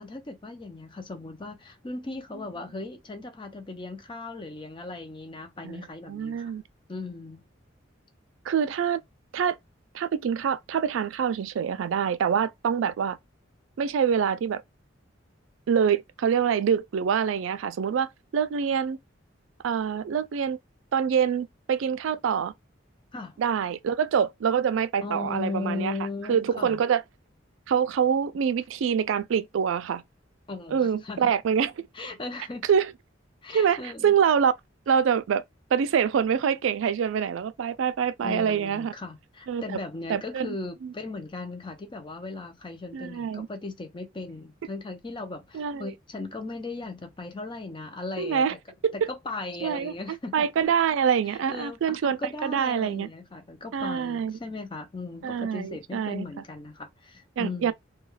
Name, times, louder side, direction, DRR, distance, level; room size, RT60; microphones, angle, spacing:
voice 1, 0.0-6.5 6.9-7.4 23.1-23.4 25.0-26.8 30.5-31.3 31.9-32.6 33.4-34.1 38.2-48.6 49.1-50.5 51.2-57.7, left 3 dB, 25° left, 0.5 m, -37 dB
voice 2, 5.6-6.6 8.5-9.0 9.3-9.6 9.9-13.2 13.8-14.6 15.7-19.0 19.6-20.6 20.9-22.5 23.4-25.9 26.3-27.0 27.7-30.0 30.7-31.9 32.7-32.9 33.5-34.5 34.9-35.4 35.7-38.9 39.5-39.8 40.1-40.6 40.8-40.9 42.9-43.5 45.5-45.9 48.2-48.5 48.8-49.1 49.6-53.1 53.7-54.4 55.2-56.3 57.4-57.7, right 7 dB, 80° right, 0.3 m, -25 dB
2.2 x 2.2 x 3.1 m
head